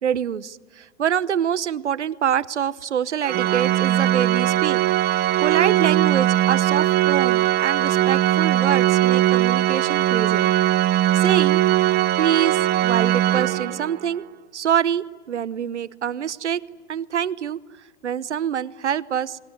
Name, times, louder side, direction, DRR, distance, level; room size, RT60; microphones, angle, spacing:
voice 1, 0.0-4.8 5.1-10.5 10.9-11.6 12.2-14.2 14.5-16.6 16.9-17.6 18.0-19.4, right 9 dB, 85° right, 18 dB, 1.0 m, -25 dB
Organ, 3.2-14.1, right 14 dB, 30° right, 1.0 m, -20 dB
29.5 x 21.0 x 9.4 m, 1.5 s
hypercardioid pair, 110°, 34 cm